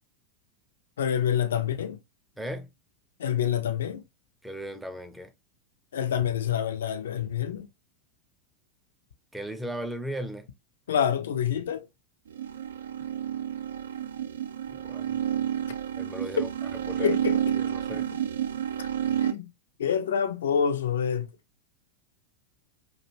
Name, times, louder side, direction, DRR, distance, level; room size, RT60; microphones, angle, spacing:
voice 1, 1.0-2.0 3.2-4.0 5.9-7.7 10.9-11.9 17.0-17.6 18.8-18.9 19.2-19.5 19.8-21.3, left 8 dB, 65° left, 0.4 m, -27 dB
voice 2, 2.4-2.7 4.4-5.3 9.3-10.5 14.7-15.2 16.0-17.2 17.5-18.1, equal, 5° right, 0.5 m, -37 dB
sound 1, 12.3-19.3, right 10 dB, 70° right, 0.3 m, -30 dB
2.4 x 2.1 x 2.9 m
figure-of-eight pair, 90°, 0 cm